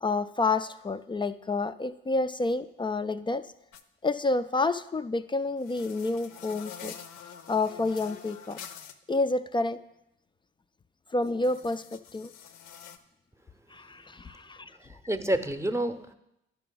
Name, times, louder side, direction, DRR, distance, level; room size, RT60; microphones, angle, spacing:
voice 1, 0.0-3.4 4.0-6.9 7.5-8.6 9.1-9.8 11.1-12.3 13.7-14.7, left 3 dB, 15° left, 12 dB, 0.3 m, -29 dB
sound 1, 3.7-3.8 5.6-8.9 11.2-13.0, left 8 dB, 65° left, 0.6 m, -46 dB
voice 2, 14.8-16.1, right 1 dB, 10° right, 9 dB, 0.7 m, -29 dB
11.0 x 5.7 x 3.9 m, 0.85 s
hypercardioid pair, 45°, 29 cm